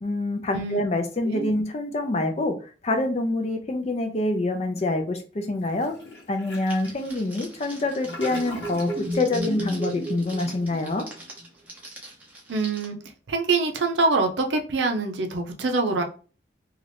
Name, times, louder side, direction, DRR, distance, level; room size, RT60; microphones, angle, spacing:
voice 1, 0.0-2.5 2.8-6.0 6.3-11.0, left 2 dB, 35° left, 0.4 m, -26 dB
Toilet flush, 5.6-9.1, left 1 dB, 75° left, 0.9 m, -42 dB
Crackle, 6.7-12.9, right 1 dB, 10° right, 0.7 m, -44 dB
sound 1, 7.6-11.4, right 1 dB, 45° right, 0.9 m, -33 dB
voice 2, 12.5-13.0 13.3-16.0, right 3 dB, 80° right, 0.5 m, -24 dB
2.6 x 2.4 x 3.3 m
head